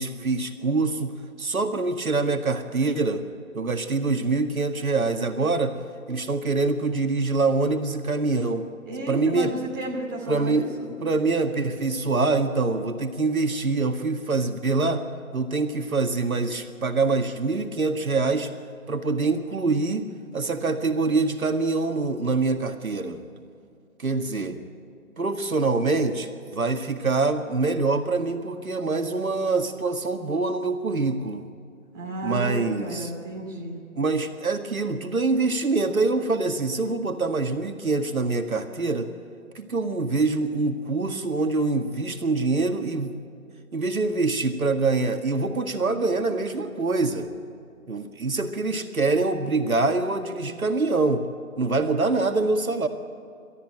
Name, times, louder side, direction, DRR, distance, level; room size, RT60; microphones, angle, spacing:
voice 1, 0.0-3.3 3.5-5.8 6.1-8.7 9.1-9.5 10.3-10.7 11.0-15.0 15.3-18.5 18.9-20.0 20.3-23.2 24.0-24.6 25.2-31.5 32.2-33.1 33.9-39.1 39.6-43.1 43.7-47.3 47.9-51.3 51.6-52.9, right 3 dB, 75° right, 5 dB, 1.9 m, -25 dB
voice 2, 8.8-10.9 31.9-33.8, right 1 dB, 15° right, -4 dB, 2.8 m, -33 dB
29.5 x 13.5 x 9.0 m, 2.4 s
figure-of-eight pair, 170°, 42 cm